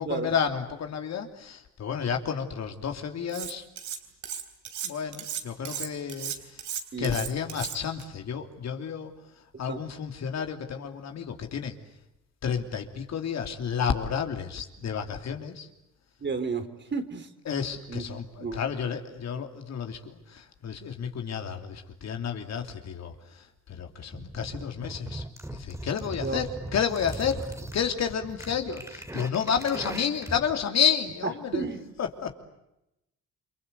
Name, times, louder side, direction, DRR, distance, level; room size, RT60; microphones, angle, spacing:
voice 1, 0.0-3.6 4.8-6.6 7.0-9.1 9.6-11.8 12.4-15.7 17.4-25.2 25.5-31.6 32.0-32.3, left 7 dB, 60° left, 5 dB, 3.2 m, -31 dB
Cutlery silverware, 3.3-4.0 4.2-8.0, right 9 dB, 75° right, 3.9 m, -35 dB
voice 2, 16.2-16.7 16.9-17.3 17.9-18.0 18.4-18.6 26.2-26.4 31.5-31.8, right 4 dB, 35° right, 8 dB, 3.6 m, -31 dB
sound 1, 24.1-30.5, right 1 dB, 10° right, 2.6 m, -39 dB
29.5 x 24.5 x 8.2 m, 0.88 s
cardioid pair, 90°, 30 cm